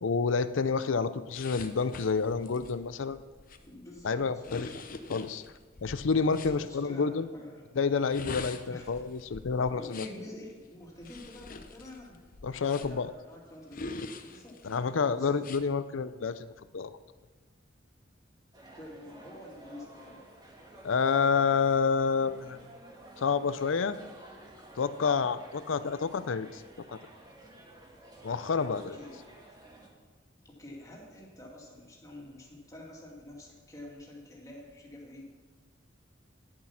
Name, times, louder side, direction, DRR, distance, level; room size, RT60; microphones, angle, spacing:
voice 1, 0.0-3.2 4.0-4.8 5.1-5.4 5.8-7.3 7.8-10.1 12.4-13.1 14.6-16.9 20.8-22.6 23.2-24.0 24.8-26.6 26.9-27.0 28.2-29.0, left 5 dB, 85° left, 13 dB, 0.5 m, -29 dB
sound 1, 1.3-6.6 7.9-10.3 11.0-13.1 13.7-14.8 15.4-15.6, left 3 dB, 45° left, 0.7 m, -44 dB
voice 2, 3.6-4.5 6.3-7.6 8.7-8.9 9.7-12.2 12.7-13.9 14.2-15.4 18.7-20.2 28.7-29.2 30.4-35.4, left 1 dB, 20° left, -2 dB, 2.2 m, -47 dB
sound 2, 18.5-29.9, right 1 dB, 20° right, 1.7 m, -52 dB
10.5 x 7.5 x 5.8 m, 1.3 s
head